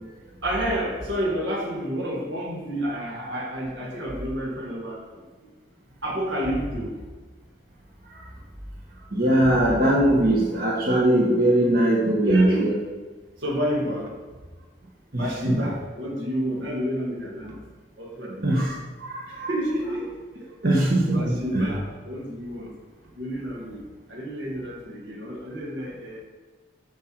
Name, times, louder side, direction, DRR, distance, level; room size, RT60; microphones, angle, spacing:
voice 1, 0.4-5.0 6.0-6.9 12.2-12.7 13.4-14.1 15.2-17.6 18.0-18.6 19.3-20.1 20.4-20.5 21.1-22.7 23.2-23.8 24.1-26.2, equal, 75° right, -1 dB, 1.8 m, -30 dB
voice 2, 9.1-12.7 15.1-15.6 18.4-19.5 20.6-21.7, right 1 dB, 50° right, -4 dB, 1.2 m, -21 dB
8.0 x 6.5 x 4.5 m, 1.4 s
head